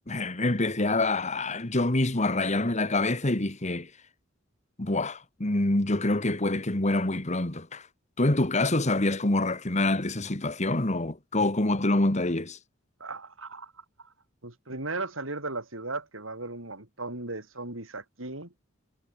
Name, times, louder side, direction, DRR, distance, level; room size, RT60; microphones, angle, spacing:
voice 1, 0.1-3.9 4.8-7.9 8.2-12.6, left 2 dB, 35° left, 1.8 m, -26 dB
voice 2, 13.0-13.7 14.4-18.5, right 3 dB, 90° right, 5.5 m, -36 dB
head